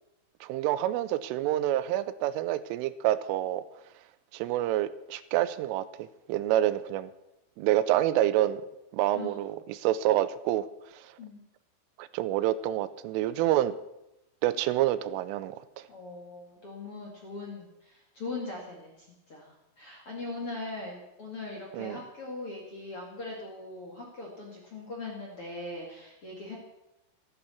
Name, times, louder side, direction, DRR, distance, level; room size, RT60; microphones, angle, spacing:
voice 1, 0.4-3.6 4.3-7.1 7.6-8.6 8.9-10.6 12.0-13.7 14.4-15.6 21.7-22.0, right 13 dB, 85° right, 15 dB, 3.2 m, -27 dB
voice 2, 15.9-26.5, left 2 dB, 45° left, -2 dB, 2.0 m, -40 dB
14.5 x 11.0 x 7.1 m, 0.90 s
omnidirectional pair, 5.7 m